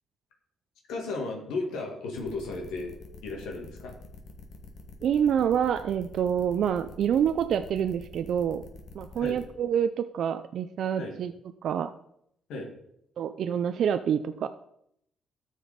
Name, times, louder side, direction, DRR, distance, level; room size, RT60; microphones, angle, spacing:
voice 1, 0.9-2.9 3.2-3.9 9.2-9.4 11.0-11.1 12.5-12.7, left 3 dB, 85° left, 1 dB, 1.9 m, -34 dB
sound 1, 2.1-9.4, left 3 dB, 65° left, 1.7 m, -47 dB
voice 2, 5.0-8.6 8.9-11.3 11.6-11.9 13.2-14.5, right 8 dB, 70° right, 10 dB, 0.4 m, -27 dB
13.0 x 5.0 x 5.0 m, 0.75 s
cardioid pair, 90°, 0 cm